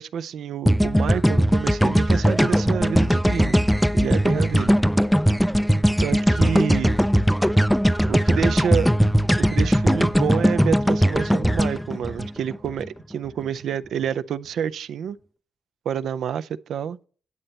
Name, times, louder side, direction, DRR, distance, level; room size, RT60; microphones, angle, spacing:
voice 1, 0.0-3.6 3.9-4.7 6.0-7.0 8.1-8.9 9.4-15.2 15.9-17.0, right 8 dB, 75° right, 0.4 m, -28 dB
sound 1, 0.6-12.9, equal, ahead, 0.3 m, -19 dB
9.6 x 7.8 x 4.2 m
cardioid pair, 130°, 0 cm